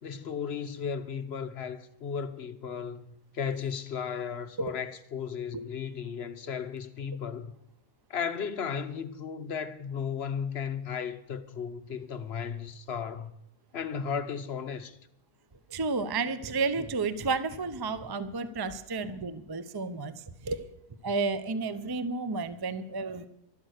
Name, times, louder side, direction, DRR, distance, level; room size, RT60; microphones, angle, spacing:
voice 1, 0.0-7.5 8.1-13.3 13.7-15.0, left 7 dB, 45° left, 1.1 m, -35 dB
voice 2, 15.7-20.1 20.4-20.6 21.0-23.3, right 4 dB, 25° right, 0.5 m, -31 dB
12.5 x 12.0 x 6.5 m
omnidirectional pair, 1.6 m